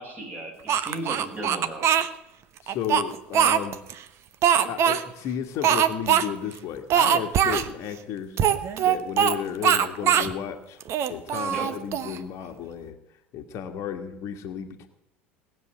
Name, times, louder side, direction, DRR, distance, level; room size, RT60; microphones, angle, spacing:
voice 1, 0.0-1.9 11.5-11.7, right 1 dB, 25° right, 1 dB, 5.9 m, -36 dB
Speech, 0.7-2.1 2.7-3.9 4.4-5.0 5.6-6.2 6.5-6.6 6.9-7.7 8.4-9.4 9.6-10.3 10.8-12.2, right 9 dB, 40° right, 1.0 m, -21 dB
voice 2, 2.6-3.8 4.7-8.4 8.8-10.8 11.1-13.0 13.3-14.9, left 9 dB, 45° left, 6 dB, 1.5 m, -33 dB
18.5 x 7.5 x 9.0 m, 0.85 s
figure-of-eight pair, 70°, 7 cm